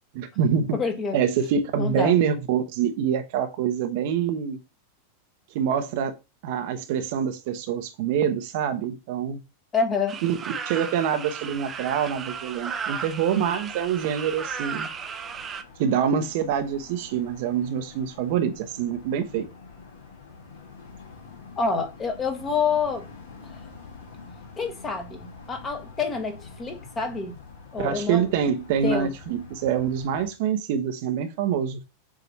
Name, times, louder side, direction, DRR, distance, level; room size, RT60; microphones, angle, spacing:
voice 1, 0.1-0.8 1.1-4.6 5.5-6.2 6.4-9.4 10.2-10.4 10.7-14.9 15.8-19.5 27.8-31.8, right 8 dB, 50° right, 0.9 m, -25 dB
voice 2, 0.7-1.2 1.8-2.2 9.7-10.2 21.6-23.1 23.4-23.7 24.6-27.4 27.7-28.3 28.8-29.1, left 5 dB, 20° left, 1.4 m, -27 dB
sound 1, 10.1-15.6, right 6 dB, 25° right, 0.7 m, -35 dB
sound 2, 11.4-30.3, left 4 dB, 55° left, 2.0 m, -47 dB
7.2 x 3.0 x 4.3 m
figure-of-eight pair, 90°, 0 cm